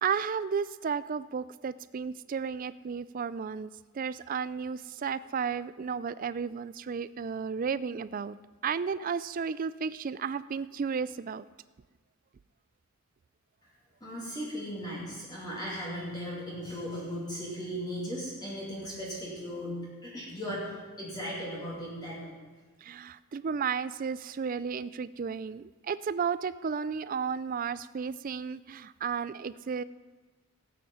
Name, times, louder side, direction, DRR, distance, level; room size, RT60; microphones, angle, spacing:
voice 1, 0.0-3.7 4.0-8.3 8.6-11.4 22.8-29.8, right 6 dB, 40° right, 16 dB, 0.3 m, -33 dB
voice 2, 14.0-22.4, equal, 20° left, -6 dB, 2.7 m, -37 dB
16.0 x 8.6 x 5.5 m, 1.3 s
head